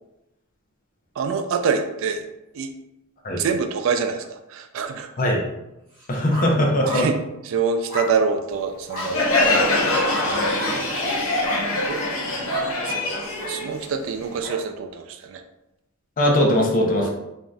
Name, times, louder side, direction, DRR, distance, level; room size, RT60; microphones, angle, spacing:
voice 1, 1.2-2.3 2.5-2.7 3.3-5.1 6.9-7.2 7.4-10.5 11.8-12.0 12.8-13.0 13.5-15.4 17.0-17.1, right 5 dB, 65° right, 7 dB, 0.3 m, -26 dB
sound 1, 5.9-6.5 6.8-7.1 7.9-8.1 8.9-9.1 10.1-10.3 10.6-10.8 11.3-11.6 12.5-12.7 13.4-13.6 14.4-14.6, equal, 30° right, 1.2 m, -33 dB
voice 2, 6.1-7.1 16.2-17.1, left 1 dB, 40° left, 0 dB, 0.6 m, -20 dB
Crowd, 9.0-14.4, left 2 dB, 70° left, 0.9 m, -23 dB
2.6 x 2.4 x 3.2 m, 0.90 s
head